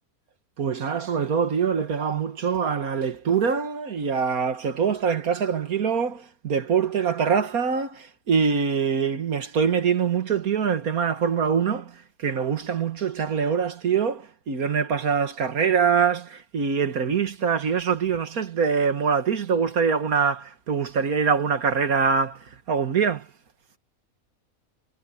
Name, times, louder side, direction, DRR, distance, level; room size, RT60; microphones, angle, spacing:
voice 1, 0.6-23.3, right 6 dB, 85° right, 2.1 m, -24 dB
omnidirectional pair, 1.5 m